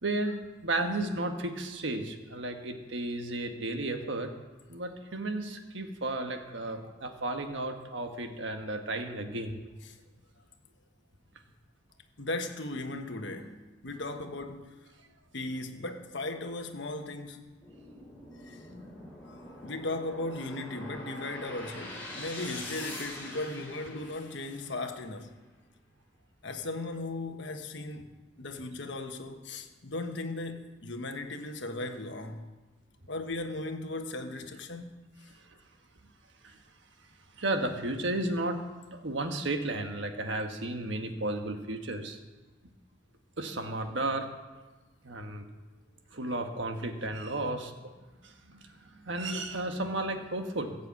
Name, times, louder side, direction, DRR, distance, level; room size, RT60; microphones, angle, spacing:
voice 1, 0.0-4.3 4.7-9.6 36.4-36.6 37.4-38.6 38.9-42.2 43.4-44.3 45.0-45.5 46.1-47.7 48.2-50.8, right 2 dB, 75° right, 1.3 m, -33 dB
voice 2, 12.2-14.7 15.3-17.5 18.4-18.7 19.2-25.3 26.4-28.1 28.4-32.5 33.1-34.9, left 2 dB, 70° left, 1.3 m, -37 dB
sound 1, 17.6-24.9, left 1 dB, 10° left, 3.8 m, -44 dB
15.5 x 6.8 x 8.3 m
head